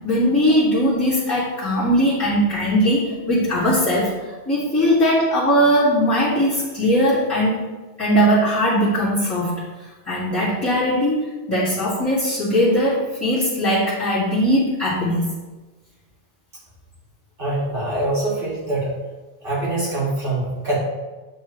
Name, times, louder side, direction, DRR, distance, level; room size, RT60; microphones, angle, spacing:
voice 1, 0.0-7.5 8.0-9.5 10.1-15.2, equal, 15° left, -13 dB, 2.0 m, -19 dB
voice 2, 17.4-18.9 19.4-20.8, right 2 dB, 55° right, -8 dB, 2.4 m, -24 dB
8.9 x 3.6 x 3.2 m, 1.2 s
omnidirectional pair, 1.1 m